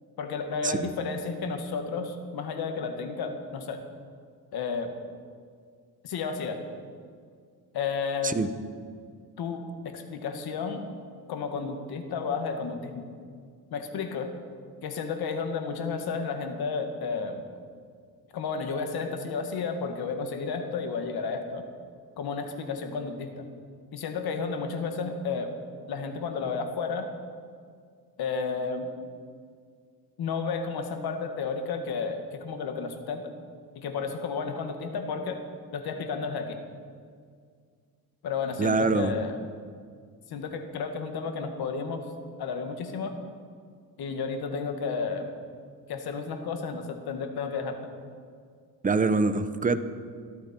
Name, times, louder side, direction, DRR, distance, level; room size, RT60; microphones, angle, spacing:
voice 1, 0.2-3.8 4.5-4.9 6.0-6.6 7.7-8.4 9.4-10.9 11.3-13.0 13.7-14.3 14.8-17.4 18.3-21.6 22.2-23.5 23.9-25.5 25.9-27.1 28.2-28.9 30.2-33.3 33.8-35.4 35.7-36.6 38.2-39.4 40.3-42.0 42.4-43.1 44.0-45.3 45.9-47.9, left 5 dB, 75° left, 5 dB, 2.0 m, -32 dB
voice 2, 38.6-39.1 48.8-49.8, right 3 dB, 20° right, 11 dB, 0.8 m, -24 dB
22.0 x 14.0 x 4.5 m, 2.1 s
cardioid pair, 130°, 37 cm